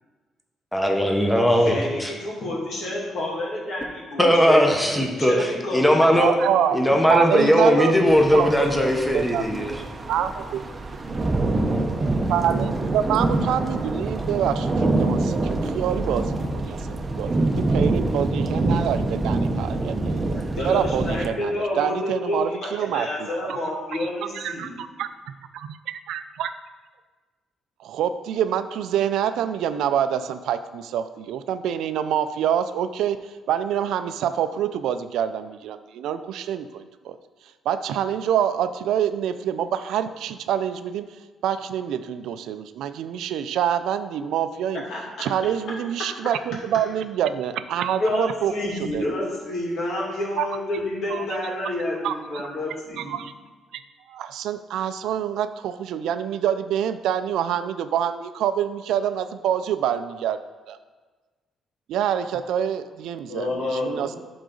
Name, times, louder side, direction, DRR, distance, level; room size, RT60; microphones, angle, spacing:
voice 1, 0.7-2.1 4.2-6.3 6.7-9.8, equal, 5° left, 1 dB, 1.1 m, -19 dB
voice 2, 1.5-6.4 20.3-24.7 44.7-45.0 48.0-53.1 63.3-64.1, left 1 dB, 65° left, -3 dB, 2.5 m, -29 dB
voice 3, 6.2-6.8 7.1-7.9 8.3-8.7 9.1-10.6 12.3-20.2 20.6-23.6 24.3-25.8 26.1-26.5 27.8-37.2 37.7-41.1 41.4-44.8 45.2-49.0 50.4-50.5 51.1-51.3 52.0-52.1 53.0-53.3 53.7-53.8 54.1-60.8 61.9-64.2, right 9 dB, 85° right, 11 dB, 0.4 m, -26 dB
sound 1, 8.1-21.3, right 2 dB, 30° right, 0.7 m, -25 dB
11.5 x 3.9 x 3.9 m, 1.3 s
cardioid pair, 90°, 0 cm